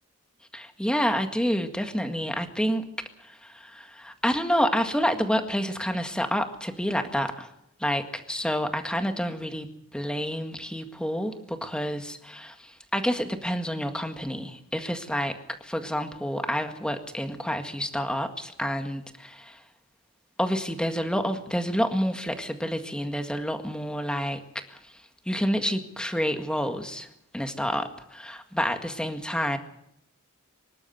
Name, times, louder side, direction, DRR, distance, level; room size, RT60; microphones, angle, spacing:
voice 1, 0.5-2.9 3.2-7.5 7.8-9.7 9.9-19.6 20.4-24.4 24.7-24.9 25.3-27.1 27.3-29.6, equal, 5° left, 6 dB, 1.8 m, -28 dB
25.0 x 12.5 x 9.3 m, 0.76 s
head